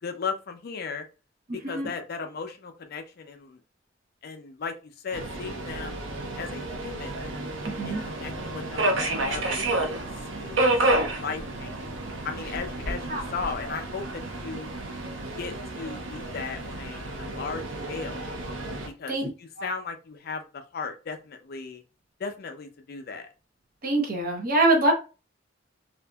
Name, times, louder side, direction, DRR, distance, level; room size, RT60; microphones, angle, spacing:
voice 1, 0.0-1.1 1.7-3.6 4.2-4.7 5.0-6.1 6.4-7.2 7.8-10.0 10.4-10.6 11.1-12.0 12.2-14.7 15.4-18.3 19.0-21.8 22.2-23.3, left 5 dB, 55° left, 6 dB, 0.4 m, -36 dB
voice 2, 1.5-1.9 7.6-8.0 13.1-13.2 19.1-19.3 19.6-19.7 23.8-24.9, right 2 dB, 50° right, 2 dB, 0.8 m, -24 dB
Subway metro underground, 5.1-18.9, right 2 dB, 85° right, 0.6 m, -30 dB
2.6 x 2.5 x 2.2 m, 0.32 s
head